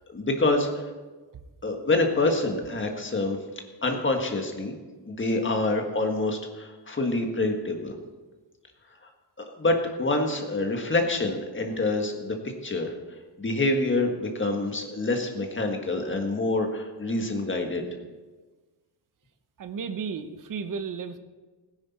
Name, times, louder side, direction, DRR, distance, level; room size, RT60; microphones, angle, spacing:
voice 1, 0.1-0.9 1.6-3.4 3.8-4.7 5.1-7.9 9.6-12.3 12.6-12.9 13.4-17.9, left 2 dB, 30° left, 3 dB, 1.6 m, -26 dB
voice 2, 19.6-21.2, right 6 dB, 50° right, 9 dB, 0.9 m, -33 dB
18.0 x 10.0 x 4.3 m, 1.3 s
wide cardioid pair, 160°, 42 cm